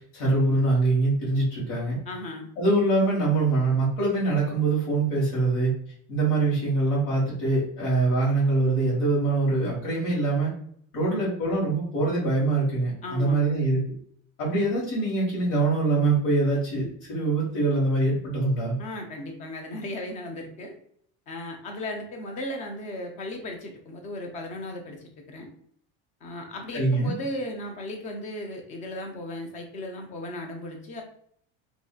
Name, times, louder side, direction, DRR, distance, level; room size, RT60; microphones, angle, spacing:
voice 1, 0.0-2.0 2.6-5.7 6.1-10.5 10.9-13.8 14.4-18.7 26.7-27.1, right 2 dB, 80° left, -7 dB, 1.3 m, -24 dB
voice 2, 2.1-2.5 13.0-13.6 18.8-20.7 21.3-25.5 26.2-31.0, left 1 dB, 25° left, 3 dB, 0.4 m, -36 dB
2.6 x 2.4 x 2.2 m, 0.64 s
cardioid pair, 165°, 30 cm